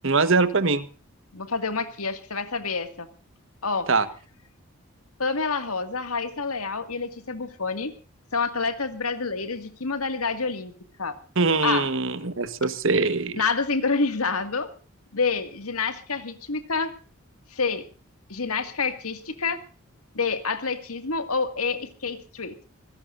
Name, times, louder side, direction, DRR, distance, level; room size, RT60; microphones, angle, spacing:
voice 1, 0.0-0.8 3.9-4.1 11.4-13.4, right 3 dB, 60° right, 13 dB, 1.3 m, -22 dB
voice 2, 1.3-3.1 3.6-3.9 5.2-7.9 8.3-10.7 11.0-11.2 11.6-11.9 13.4-14.7 15.1-16.9 17.5-17.8 18.3-19.6 20.1-22.5, left 4 dB, 85° left, 9 dB, 2.0 m, -28 dB
25.5 x 17.0 x 2.6 m, 0.37 s
head